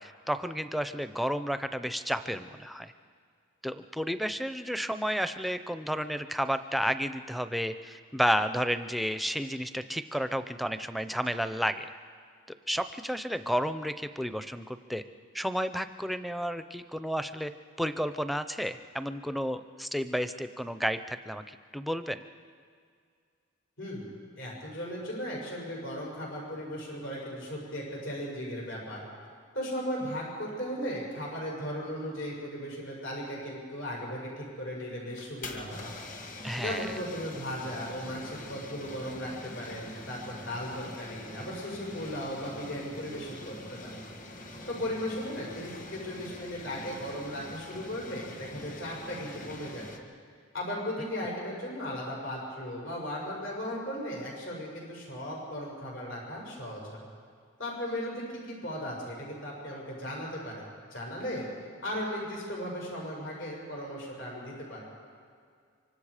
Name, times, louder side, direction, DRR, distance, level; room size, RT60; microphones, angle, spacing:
voice 1, 0.0-2.9 3.6-11.9 12.7-15.0 15.3-17.5 17.8-22.2 36.4-36.9, equal, ahead, 10 dB, 0.6 m, -31 dB
voice 2, 23.8-29.1 29.5-35.8 36.5-43.9 44.7-49.9 50.5-57.0 57.6-60.6 60.9-61.5 61.8-64.8, equal, 70° left, -3 dB, 6.6 m, -37 dB
sound 1, 35.1-50.0, left 1 dB, 40° left, 1.9 m, -44 dB
25.0 x 25.0 x 5.0 m, 2.1 s
head